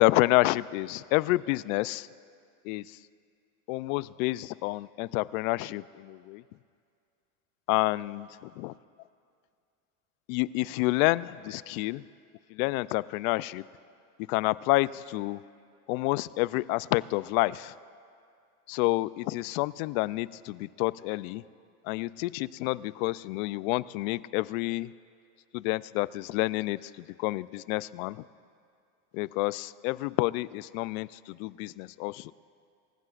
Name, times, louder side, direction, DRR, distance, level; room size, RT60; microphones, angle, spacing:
voice 1, 0.0-2.1 2.6-3.0 3.7-6.4 7.7-8.3 8.6-8.7 10.3-12.0 12.5-13.6 14.3-15.4 15.9-17.7 18.7-21.4 21.8-24.9 25.5-28.3 29.1-32.3, left 20 dB, 65° left, 19 dB, 0.5 m, -29 dB
25.0 x 15.0 x 2.5 m, 2.3 s
supercardioid pair, 115°, 45 cm